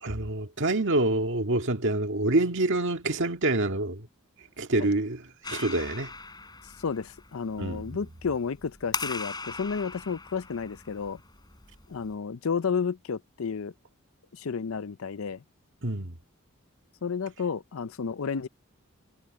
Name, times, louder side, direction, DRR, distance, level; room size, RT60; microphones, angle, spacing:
voice 1, 0.0-4.1 4.6-6.1 7.6-7.9 15.8-16.2, right 2 dB, 60° right, 1.8 m, -27 dB
Clapping, 5.4-12.1, left 4 dB, 20° left, 3.6 m, -39 dB
voice 2, 6.8-11.2 11.9-13.7 14.3-15.4 17.0-18.5, left 5 dB, 70° left, 0.6 m, -31 dB
head